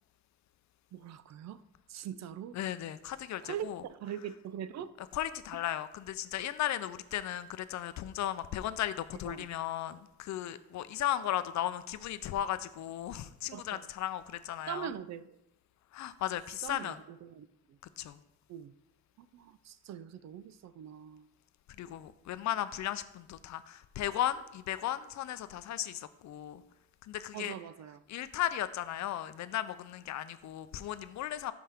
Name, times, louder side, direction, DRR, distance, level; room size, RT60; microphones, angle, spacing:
voice 1, 0.9-1.6 1.9-2.6 3.4-4.9 9.3-9.5 13.5-13.9 14.7-15.4 16.6-17.5 18.5-18.7 19.2-21.3 27.3-28.0, right 9 dB, 60° right, 14 dB, 0.5 m, -42 dB
voice 2, 2.6-3.8 5.1-14.9 15.9-17.0 18.0-18.2 21.8-26.6 27.1-27.5 28.1-31.5, left 12 dB, 65° left, 13 dB, 0.6 m, -36 dB
5.5 x 4.8 x 5.8 m, 0.82 s
cardioid pair, 90°, 30 cm